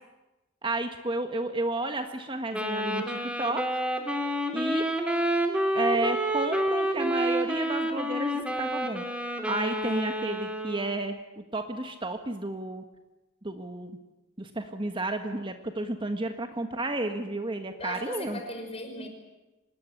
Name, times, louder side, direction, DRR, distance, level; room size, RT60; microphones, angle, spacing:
voice 1, 0.6-3.7 4.5-4.8 5.7-9.0 9.4-12.8 13.4-13.9 14.4-18.4, right 2 dB, 25° right, 6 dB, 1.5 m, -32 dB
Wind instrument woodwind instrument, 2.5-11.0, right 1 dB, 5° right, 3.0 m, -29 dB
voice 2, 17.8-19.1, left 1 dB, 30° left, 4 dB, 5.9 m, -37 dB
25.0 x 20.0 x 9.9 m, 1.0 s
head